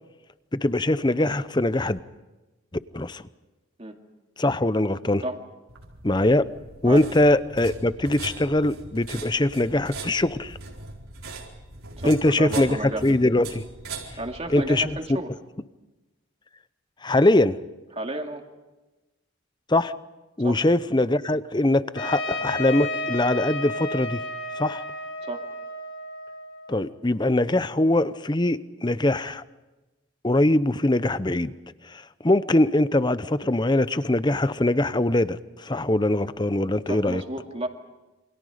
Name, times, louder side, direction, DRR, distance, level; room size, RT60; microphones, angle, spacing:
voice 1, 0.5-2.0 2.9-3.2 4.4-5.2 6.0-6.5 6.8-10.6 12.0-12.8 13.0-13.6 14.5-15.0 17.0-17.6 19.7-19.9 20.4-24.2 24.6-24.8 26.7-29.4 30.2-31.5 31.8-37.2, left 1 dB, 20° left, 14 dB, 0.7 m, -22 dB
sound 1, 5.7-15.0, right 3 dB, 85° right, 4.4 m, -40 dB
voice 2, 12.0-13.1 14.2-15.3 17.9-18.4 20.4-20.6 25.2-25.5 36.9-37.7, right 1 dB, 30° right, 3 dB, 2.4 m, -32 dB
Trumpet, 22.0-26.8, left 1 dB, 65° left, 6.6 m, -32 dB
28.5 x 25.5 x 5.1 m, 1.1 s
head